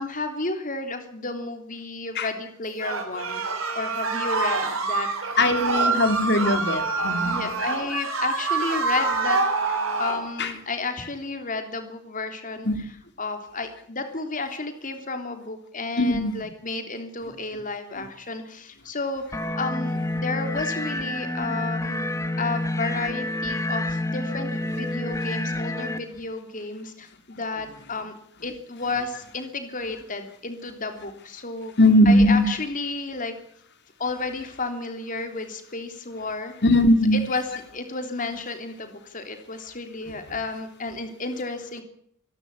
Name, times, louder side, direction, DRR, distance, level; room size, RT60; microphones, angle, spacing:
voice 1, 0.0-3.4 3.7-5.1 7.2-9.4 9.7-12.7 13.2-28.1 28.4-31.7 32.0-33.3 34.0-36.5 37.1-41.8, left 3 dB, 40° left, 6 dB, 3.4 m, -32 dB
sound 1, 2.8-10.2, right 3 dB, 70° right, 7.2 m, -26 dB
voice 2, 5.4-7.4 10.4-10.6 12.6-12.8 16.0-16.3 17.9-18.0 24.6-24.7 31.8-32.5 36.6-37.3 40.3-40.4, left 1 dB, 55° left, 7 dB, 3.3 m, -20 dB
sound 2, 19.3-26.0, left 1 dB, 15° left, 1.7 m, -28 dB
26.0 x 12.0 x 10.0 m, 0.67 s
head